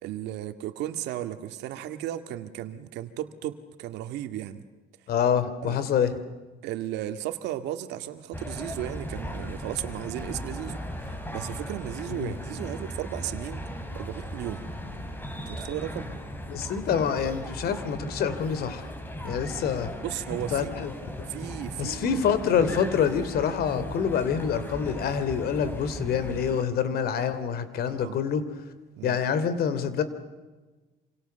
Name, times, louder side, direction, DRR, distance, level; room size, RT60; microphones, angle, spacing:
voice 1, 0.0-4.6 5.6-5.8 6.6-13.6 13.9-14.6 15.5-16.1 19.2-19.4 20.0-20.9 21.3-22.2 27.9-28.2 29.0-29.2, right 12 dB, 85° right, 9 dB, 2.1 m, -35 dB
voice 2, 5.1-6.1 12.1-12.3 16.5-18.9 19.2-19.9 20.5-20.9 21.8-28.4 29.0-30.0, left 7 dB, 65° left, 13 dB, 3.3 m, -26 dB
sound 1, 8.3-26.6, equal, 10° left, 4.4 m, -37 dB
27.5 x 27.5 x 7.0 m, 1.2 s
cardioid pair, 110°, 17 cm